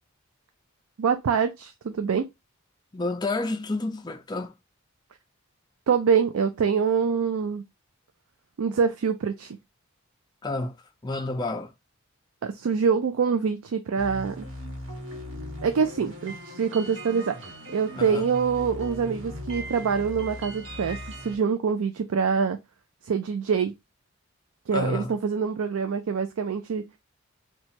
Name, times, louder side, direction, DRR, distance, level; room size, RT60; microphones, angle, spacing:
voice 1, 1.0-2.3 5.9-7.6 8.6-9.6 12.4-14.5 15.6-17.4 17.7-22.6 23.0-23.7 24.7-26.9, right 6 dB, 85° right, 0.4 m, -25 dB
voice 2, 2.9-4.5 10.4-10.8 11.0-11.7 17.9-18.3 24.7-25.1, left 2 dB, 20° left, 0.4 m, -30 dB
sound 1, 14.0-21.3, equal, 65° right, 1.2 m, -38 dB
2.9 x 2.3 x 4.2 m
head